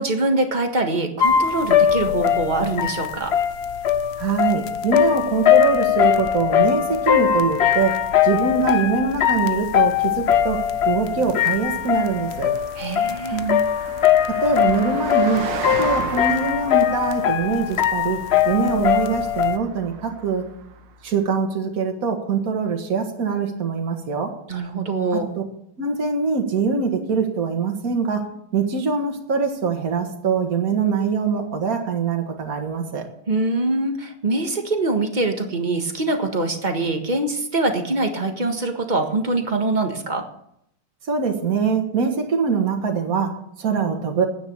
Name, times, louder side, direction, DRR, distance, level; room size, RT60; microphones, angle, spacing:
voice 1, 0.0-3.3 12.7-13.4 24.5-25.3 33.3-40.3, right 2 dB, 25° right, 5 dB, 1.5 m, -23 dB
sound 1, 1.2-19.6, left 9 dB, 60° left, 0.7 m, -21 dB
voice 2, 4.2-12.5 13.3-13.6 14.3-15.5 15.8-20.5 21.0-24.3 25.8-28.3 28.5-33.1 41.1-43.3 43.6-44.2, right 5 dB, 50° right, 4 dB, 2.1 m, -23 dB
Car passing by, 5.4-21.1, right 6 dB, 80° right, 1.7 m, -38 dB
10.0 x 9.3 x 8.7 m, 0.74 s
omnidirectional pair, 2.0 m